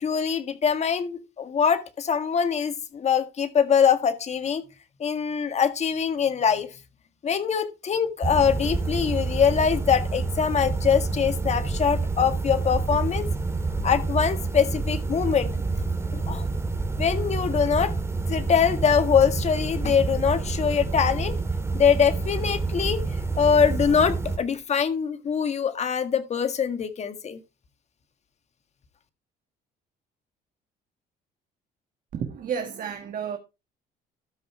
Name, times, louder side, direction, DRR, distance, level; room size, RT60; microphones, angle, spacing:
voice 1, 0.0-4.6 5.0-6.7 7.2-13.3 13.8-15.5 16.1-16.4 17.0-17.9 18.3-21.4 21.7-23.0 23.4-27.4, left 7 dB, 40° left, 1.7 m, -23 dB
sound 1, 8.2-24.4, right 3 dB, 15° right, 1.8 m, -28 dB
voice 2, 32.1-33.4, right 7 dB, 55° right, 1.6 m, -31 dB
13.0 x 5.5 x 4.4 m
cardioid pair, 110°, 17 cm